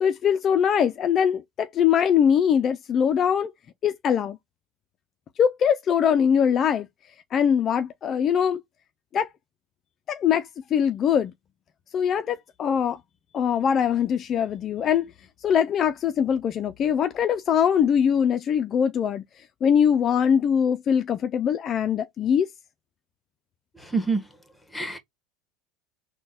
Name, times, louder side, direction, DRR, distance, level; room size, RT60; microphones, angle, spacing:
voice 1, 0.0-3.5 3.8-4.4 5.4-6.9 7.3-8.6 9.1-9.3 10.1-11.3 11.9-13.0 13.3-15.1 15.4-19.2 19.6-22.5, left 8 dB, 40° left, 0.4 m, -22 dB
voice 2, 23.8-24.2 24.7-25.0, right 4 dB, 5° left, 1.2 m, -26 dB
3.9 x 2.2 x 3.7 m
hypercardioid pair, 100°, 0 cm